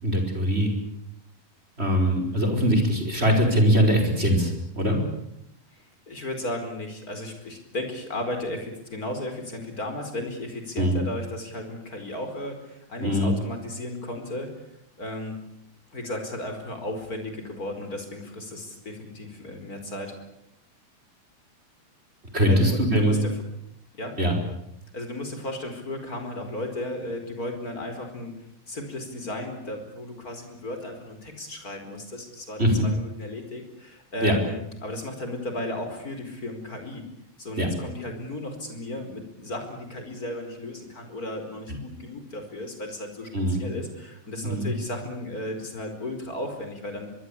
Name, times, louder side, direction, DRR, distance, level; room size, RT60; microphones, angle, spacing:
voice 1, 0.0-0.7 1.8-5.0 10.8-11.0 13.0-13.3 22.3-23.2 24.2-24.4 32.6-32.9 34.2-34.3 37.6-37.7 43.3-43.7 44.4-44.7, equal, 15° right, 3 dB, 4.9 m, -22 dB
voice 2, 6.1-14.5 15.0-15.4 15.9-20.1 22.5-23.3 24.0-24.2 24.9-37.1 37.4-47.1, left 1 dB, 25° left, 6 dB, 4.9 m, -35 dB
24.0 x 23.0 x 8.5 m, 0.79 s
omnidirectional pair, 4.2 m